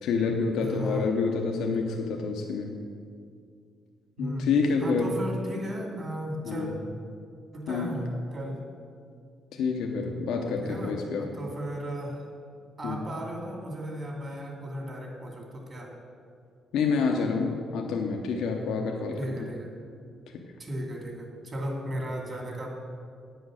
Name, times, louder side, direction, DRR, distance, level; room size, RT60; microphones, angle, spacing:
voice 1, 0.0-2.8 4.2-5.2 6.4-6.7 7.7-8.1 9.5-11.4 12.8-13.0 16.7-19.2 20.3-20.4, left 4 dB, 85° left, 2 dB, 0.8 m, -28 dB
voice 2, 0.6-1.1 4.2-4.5 4.8-6.7 7.5-8.0 8.3-8.6 10.6-12.3 12.8-15.9 19.2-19.7 20.6-22.7, equal, 40° right, 0 dB, 2.4 m, -35 dB
9.0 x 7.8 x 6.4 m, 2.2 s
cardioid pair, 90°, 0 cm